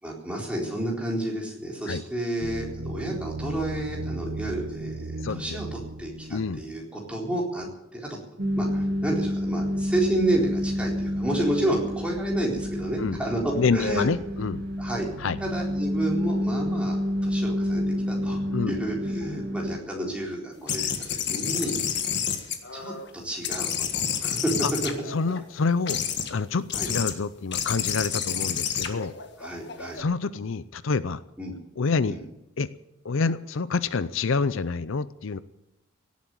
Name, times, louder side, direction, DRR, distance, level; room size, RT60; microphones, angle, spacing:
voice 1, 0.0-7.7 7.9-8.1 8.6-14.0 14.8-15.1 15.4-18.4 18.7-21.8 22.7-24.5 26.7-26.9 29.4-30.0 31.4-31.6 32.1-32.2, right 1 dB, 5° right, -3 dB, 4.0 m, -30 dB
sound 1, 2.4-6.9, right 2 dB, 80° right, 0.8 m, -36 dB
voice 2, 5.2-5.6 6.3-6.6 13.0-13.2 13.6-14.6 15.2-15.4 18.5-18.8 24.6-24.7 25.1-26.0 26.3-29.2 29.9-31.2 31.8-32.2 32.6-32.7 33.0-35.4, left 4 dB, 70° left, 15 dB, 0.5 m, -27 dB
sound 2, 8.4-19.8, equal, 45° right, 2.4 m, -29 dB
sound 3, 20.7-23.1 23.4-25.4 25.9-26.3 26.7-27.1 27.5-30.0, left 8 dB, 55° left, 1.7 m, -29 dB
17.5 x 8.4 x 9.7 m, 0.89 s
head